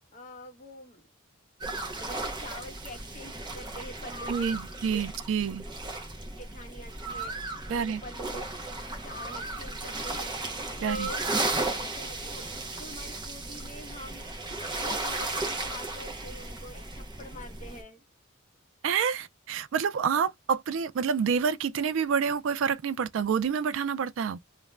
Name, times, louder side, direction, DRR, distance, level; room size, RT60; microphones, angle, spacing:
voice 1, 0.1-1.0 1.8-4.6 4.8-5.0 6.4-8.5 9.0-10.5 10.8-11.5 11.8-12.4 12.8-18.0, equal, 35° left, 0.7 m, -45 dB
sound 1, 1.6-17.8, right 2 dB, 20° right, 0.6 m, -35 dB
voice 2, 4.3-5.6 7.7-8.0 10.8-11.1 18.8-24.4, right 6 dB, 65° right, 0.3 m, -28 dB
2.5 x 2.0 x 3.1 m
head